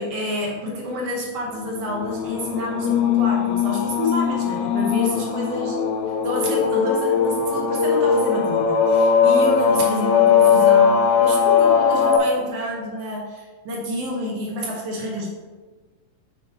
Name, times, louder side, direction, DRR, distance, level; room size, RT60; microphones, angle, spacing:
voice 1, 0.0-5.8 6.2-15.3, left 1 dB, 70° right, -1 dB, 1.5 m, -28 dB
sound 1, 1.9-12.2, left 6 dB, 85° left, 1.8 m, -19 dB
7.1 x 4.6 x 4.6 m, 1.3 s
omnidirectional pair, 4.1 m